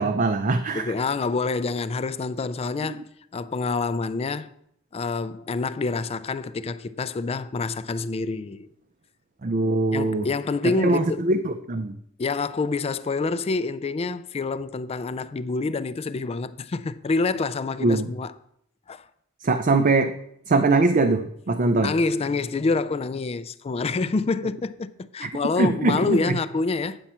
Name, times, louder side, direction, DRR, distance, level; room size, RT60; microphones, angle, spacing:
voice 1, 0.0-0.9 9.4-10.3 10.6-12.0 17.8-18.1 19.4-20.1 20.5-21.9 25.2-25.3 25.6-26.4, right 3 dB, 40° right, 0.5 m, -22 dB
voice 2, 0.7-4.5 4.9-8.7 9.9-11.3 12.2-18.3 18.9-19.1 21.7-27.0, left 3 dB, 30° left, 0.3 m, -27 dB
9.0 x 7.1 x 4.3 m
head